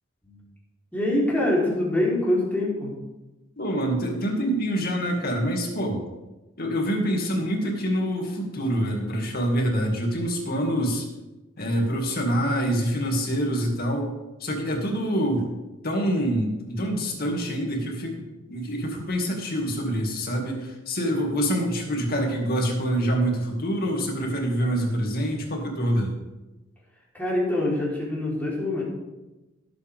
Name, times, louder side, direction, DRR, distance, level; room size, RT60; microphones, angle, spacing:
voice 1, 0.9-2.9 27.1-28.8, left 1 dB, 10° left, -6 dB, 4.0 m, -24 dB
voice 2, 3.6-6.0 6.6-11.1 11.6-14.1 14.4-15.5 15.8-26.1, equal, 50° left, 1 dB, 2.4 m, -26 dB
17.5 x 8.2 x 3.6 m, 1.1 s
head